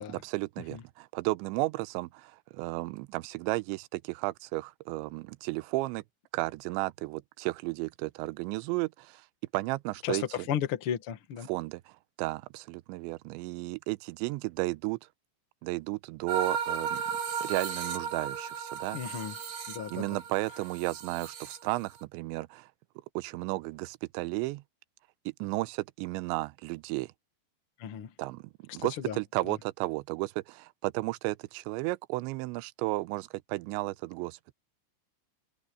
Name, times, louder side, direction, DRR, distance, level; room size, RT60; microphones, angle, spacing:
voice 1, 0.1-6.0 6.3-9.2 9.5-10.2 11.5-11.9 12.2-15.0 15.6-17.0 17.4-19.0 19.9-22.7 23.2-24.6 25.4-27.1 28.2-34.5, right 21 dB, 85° right, 2.9 m, -33 dB
voice 2, 10.0-11.5 18.9-19.4 19.7-20.1 27.8-28.1 28.7-29.2 29.5-29.6, left 9 dB, 70° left, 1.3 m, -34 dB
sound 1, 16.3-22.0, right 7 dB, 65° right, 5.5 m, -35 dB
omnidirectional pair, 5.4 m